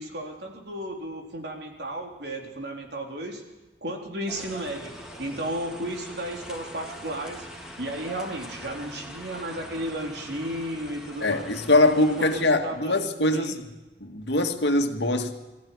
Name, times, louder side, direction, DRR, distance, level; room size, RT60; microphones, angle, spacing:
voice 1, 0.0-3.4 3.8-4.9 5.2-7.4 7.8-11.6 12.2-13.5, right 1 dB, 65° right, 2 dB, 4.0 m, -34 dB
sound 1, 4.3-12.4, equal, 5° right, 3.6 m, -43 dB
voice 2, 11.2-13.6 14.0-15.3, left 2 dB, 70° left, 5 dB, 2.0 m, -22 dB
22.0 x 14.5 x 9.7 m, 1.1 s
head